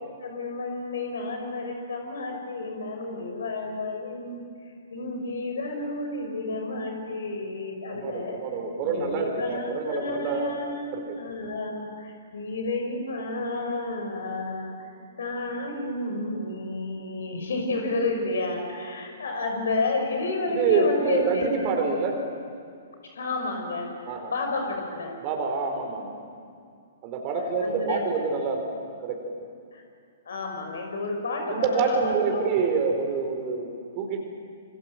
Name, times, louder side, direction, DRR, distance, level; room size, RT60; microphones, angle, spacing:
voice 1, 0.2-8.4 8.8-21.7 23.0-25.1 27.6-28.0 29.7-29.8 30.3-32.5, left 2 dB, 65° left, 3 dB, 5.6 m, -31 dB
voice 2, 7.9-10.5 10.9-11.2 20.5-22.2 24.1-24.3 25.2-26.1 27.0-28.7 29.0-29.2 31.5-34.2, right 5 dB, 35° right, 3 dB, 4.5 m, -27 dB
27.5 x 25.0 x 7.8 m, 2.3 s
figure-of-eight pair, 120°, 0 cm